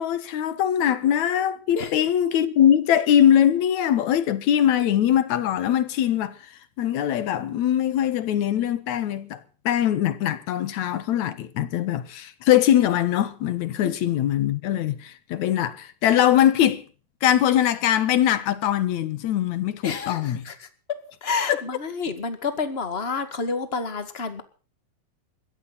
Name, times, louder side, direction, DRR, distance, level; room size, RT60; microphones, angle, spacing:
voice 1, 0.0-9.4 9.7-16.8 17.2-20.5 21.5-21.6, left 10 dB, 60° left, 2.1 m, -22 dB
voice 2, 19.8-20.5 21.2-24.4, left 4 dB, 40° left, 0.8 m, -29 dB
22.0 x 16.5 x 4.1 m
omnidirectional pair, 4.7 m